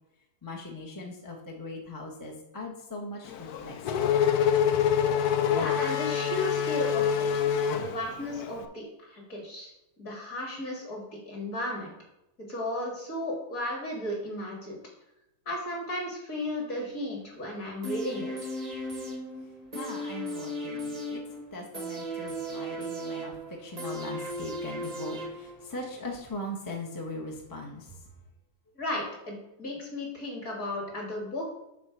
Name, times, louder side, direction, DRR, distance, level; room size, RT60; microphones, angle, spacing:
voice 1, 0.4-3.7 19.7-21.2 21.5-27.9, left 2 dB, 15° left, -2 dB, 0.7 m, -40 dB
Race car auto racing / Accelerating revving vroom, 3.3-8.5, left 8 dB, 85° left, 0.8 m, -26 dB
voice 2, 5.5-7.3 7.7-9.7 10.0-11.9 12.5-14.8 15.5-18.3 28.8-31.5, left 1 dB, 40° left, -2 dB, 2.5 m, -34 dB
sound 1, 17.8-25.8 26.1-26.2, equal, 30° right, 0.8 m, -36 dB
7.6 x 4.0 x 6.0 m, 0.89 s
omnidirectional pair, 2.3 m